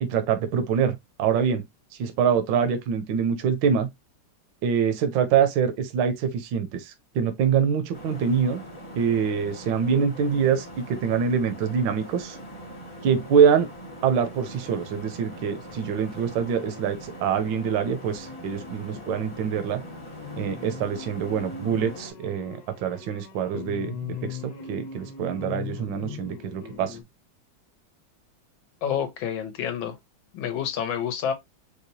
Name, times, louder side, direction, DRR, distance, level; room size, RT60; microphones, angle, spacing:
voice 1, 0.0-1.6 2.0-3.9 4.6-8.6 9.0-12.4 13.0-13.7 14.0-19.8 20.4-27.0, right 7 dB, 75° right, 1.3 m, -25 dB
sound 1, 7.9-22.1, equal, 20° left, 0.8 m, -42 dB
sound 2, 14.3-17.2 17.5-27.0, left 6 dB, 55° left, 1.5 m, -41 dB
voice 2, 28.8-30.0 30.3-31.3, left 8 dB, 80° left, 1.6 m, -28 dB
4.7 x 2.2 x 2.7 m
omnidirectional pair, 2.1 m